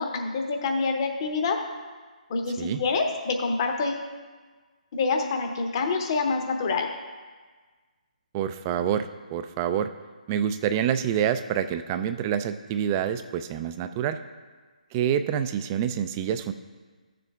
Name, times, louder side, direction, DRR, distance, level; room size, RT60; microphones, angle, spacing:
voice 1, 0.0-1.6 2.3-4.0 4.9-6.9, left 4 dB, 35° left, 4 dB, 0.9 m, -26 dB
voice 2, 8.3-9.9 10.3-14.2 14.9-16.5, right 9 dB, 20° right, 10 dB, 0.3 m, -27 dB
14.0 x 7.0 x 2.4 m, 1.4 s
figure-of-eight pair, 140°, 4 cm